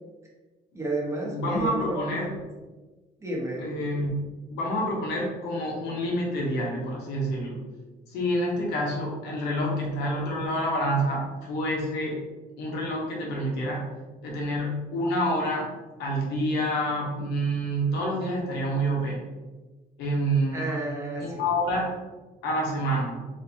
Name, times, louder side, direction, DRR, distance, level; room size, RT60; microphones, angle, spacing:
voice 1, 0.7-2.3 3.2-3.7 20.5-21.4, right 1 dB, 15° right, -3 dB, 1.1 m, -31 dB
voice 2, 1.3-2.4 3.6-4.2 4.5-7.6 8.1-12.2 12.6-13.9 14.2-15.7 16.0-19.2 20.0-20.6 21.2-21.9 22.4-23.2, equal, 80° left, -2 dB, 1.2 m, -28 dB
3.4 x 2.7 x 3.5 m, 1.2 s
cardioid pair, 110°, 17 cm